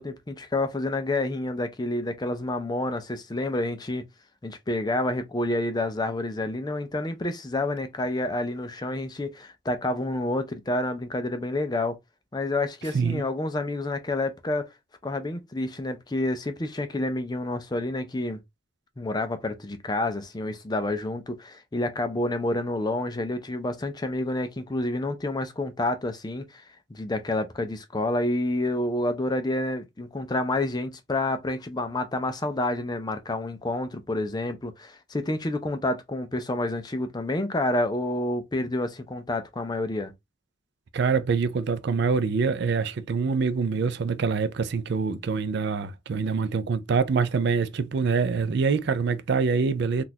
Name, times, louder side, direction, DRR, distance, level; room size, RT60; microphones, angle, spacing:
voice 1, 0.0-4.0 4.4-12.0 12.3-14.7 15.0-18.4 19.0-26.6 26.9-40.1, left 2 dB, 20° left, 0.5 m, -29 dB
voice 2, 40.9-50.0, right 5 dB, 55° right, 0.4 m, -25 dB
3.8 x 2.4 x 2.7 m
head